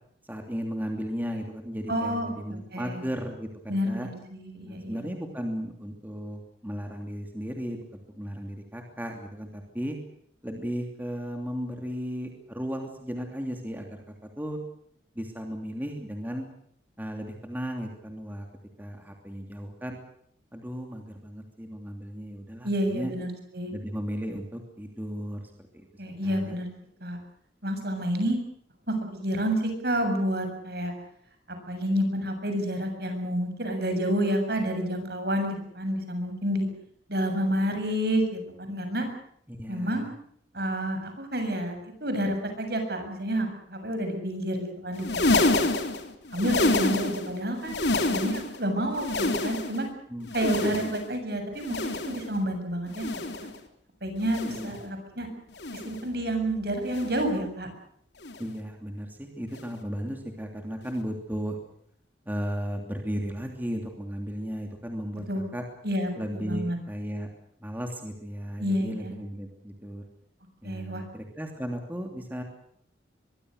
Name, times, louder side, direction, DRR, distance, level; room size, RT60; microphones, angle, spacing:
voice 1, 0.2-4.1 4.6-7.8 8.1-10.0 10.4-14.6 15.1-16.5 17.0-18.5 18.8-20.0 20.5-23.1 23.7-25.9 26.2-26.5 39.5-40.1 50.1-50.8 54.5-54.7 58.4-61.6 62.3-65.6 66.2-67.3 67.6-70.0 70.6-72.4, equal, 10° right, 3 dB, 2.9 m, -35 dB
voice 2, 1.9-3.0 3.7-5.0 22.6-23.7 26.0-26.7 27.0-27.2 27.6-28.4 28.9-29.0 29.2-30.9 31.7-36.7 37.1-39.1 39.7-40.1 40.5-45.6 46.3-49.9 50.3-53.1 54.0-55.3 55.7-57.7 65.3-65.5 65.8-66.8 68.6-69.1 70.6-71.0, equal, 60° right, 6 dB, 7.3 m, -29 dB
sound 1, 44.9-47.3 47.6-48.6 48.9-49.9 50.3-51.1 51.6-52.3 52.9-53.6 54.2-54.8 55.5-56.1 56.9-57.3 58.2-58.5 59.5-59.7 60.9-61.0, left 2 dB, 70° left, 3.3 m, -28 dB
24.0 x 23.5 x 6.6 m, 0.68 s
head